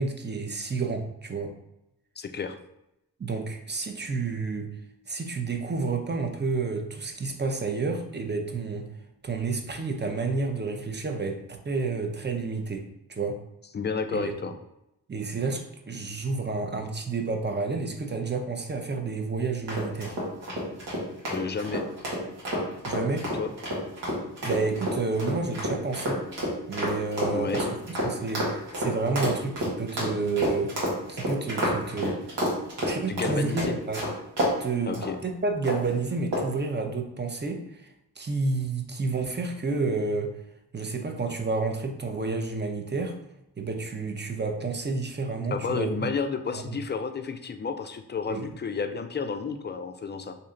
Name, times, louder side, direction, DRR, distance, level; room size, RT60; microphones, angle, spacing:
voice 1, 0.0-1.5 3.2-4.7 5.1-8.9 9.2-13.4 14.1-14.3 15.1-20.2 22.8-23.3 24.4-26.2 26.7-27.7 28.0-32.2 32.9-34.0 34.6-35.0 35.2-37.9 38.2-40.3 40.7-43.2 43.6-46.1 46.5-46.8 48.3-48.5, right 4 dB, 25° right, 4 dB, 0.6 m, -30 dB
voice 2, 2.2-2.5 13.7-14.5 21.3-21.8 23.3-23.5 27.3-27.6 33.1-33.8 34.9-35.2 45.5-50.4, left 5 dB, 25° left, 7 dB, 0.4 m, -31 dB
sound 1, 19.7-34.6 34.9-35.1 35.6-35.9 36.3-36.6, equal, 85° right, 1.2 m, -29 dB
3.1 x 2.8 x 3.7 m, 0.85 s
cardioid pair, 45°, 41 cm